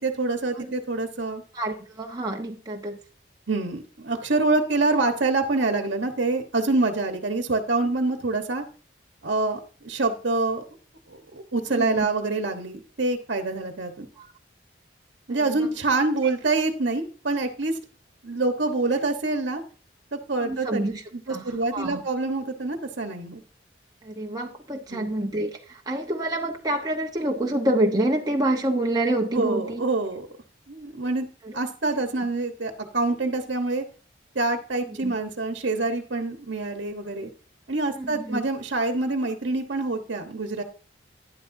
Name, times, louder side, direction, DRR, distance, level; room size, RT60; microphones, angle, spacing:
voice 1, 0.0-1.4 3.5-8.6 9.2-10.6 11.1-14.1 15.3-17.8 18.2-19.6 20.1-20.9 21.3-23.4 24.9-25.1 29.3-30.3 30.7-31.3 31.5-33.8 34.3-37.3 37.7-40.6, right 3 dB, 80° right, 5 dB, 1.2 m, -26 dB
voice 2, 1.5-3.0 11.7-12.1 14.2-14.3 15.3-15.7 20.4-21.0 21.3-22.0 24.0-29.8 31.4-31.6 34.8-35.1 37.9-38.5, right 1 dB, 20° right, 1 dB, 1.0 m, -27 dB
12.0 x 10.5 x 2.7 m, 0.39 s
head